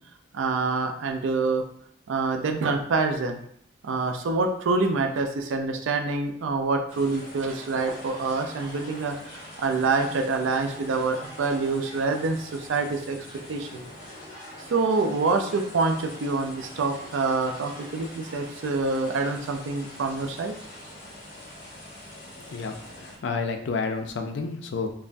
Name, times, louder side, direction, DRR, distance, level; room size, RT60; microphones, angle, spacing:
voice 1, 0.3-1.6 2.1-3.4 3.8-13.2 13.5-13.8 14.7-20.5, right 3 dB, 90° right, 5 dB, 0.4 m, -26 dB
sound 1, 6.9-23.2, left 1 dB, 45° left, 0.9 m, -44 dB
voice 2, 22.5-24.9, left 4 dB, 70° left, 5 dB, 0.4 m, -30 dB
3.2 x 2.1 x 2.5 m, 0.67 s
head